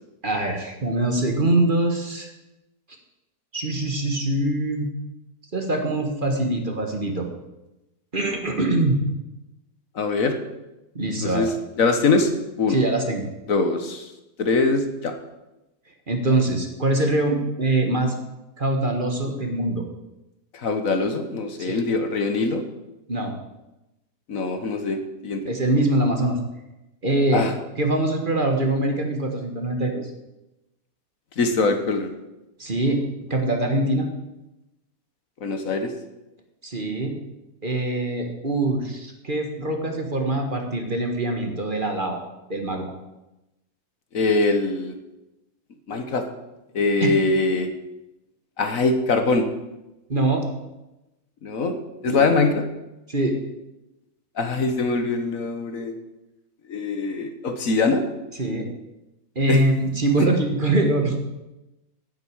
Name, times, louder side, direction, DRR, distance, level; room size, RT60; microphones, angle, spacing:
voice 1, 0.2-2.3 3.5-4.9 5.5-7.3 8.1-9.0 10.9-11.5 12.7-13.3 16.1-18.1 18.6-19.8 21.6-21.8 23.1-23.3 25.4-26.4 27.0-27.5 27.8-30.1 32.6-33.0 33.3-34.1 36.6-37.1 37.6-42.2 42.5-42.8 47.0-47.1 50.1-50.4 52.0-52.3 53.1-53.4 58.4-58.7 59.3-61.4, right 2 dB, 35° right, 3 dB, 1.6 m, -23 dB
voice 2, 9.9-10.3 11.2-11.5 11.8-12.3 12.6-12.8 13.5-14.1 14.4-15.1 20.5-22.6 24.3-25.4 27.3-27.5 31.4-32.1 35.4-35.9 44.1-44.9 45.9-46.2 46.7-47.7 48.6-49.5 51.4-51.8 52.0-52.6 54.4-55.9 56.7-58.0 59.5-59.6, left 3 dB, 65° left, 7 dB, 1.5 m, -22 dB
10.0 x 7.9 x 8.7 m, 0.98 s
omnidirectional pair, 1.6 m